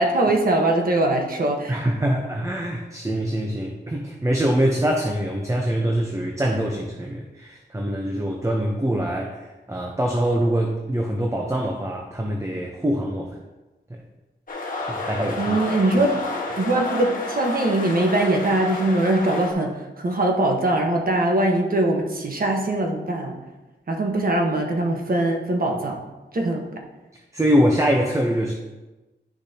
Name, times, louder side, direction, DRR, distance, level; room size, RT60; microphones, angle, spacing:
voice 1, 0.0-1.8 15.4-16.2 16.6-23.4 23.9-26.0 26.3-26.7, right 2 dB, 50° right, 1 dB, 1.3 m, -22 dB
voice 2, 1.7-9.4 9.7-13.4 13.9-14.0 14.9-15.6 27.3-28.5, equal, 15° right, 1 dB, 0.8 m, -24 dB
sound 1, 14.5-19.5, left 3 dB, 45° left, 1.4 m, -31 dB
10.0 x 6.6 x 2.9 m, 1.1 s
wide cardioid pair, 110°, 19 cm